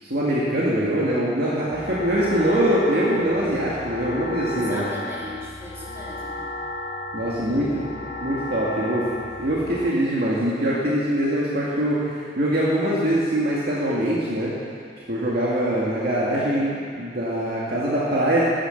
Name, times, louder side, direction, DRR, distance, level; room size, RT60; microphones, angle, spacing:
voice 1, 0.0-4.8 7.1-7.8 8.2-9.1 9.4-14.5 15.1-18.4, right 1 dB, 55° right, -7 dB, 2.2 m, -23 dB
sound 1, 1.7-9.9, left 1 dB, 45° left, 0.9 m, -34 dB
voice 2, 4.5-6.5, left 1 dB, 15° right, -7 dB, 3.2 m, -37 dB
15.0 x 10.0 x 6.6 m, 2.2 s
head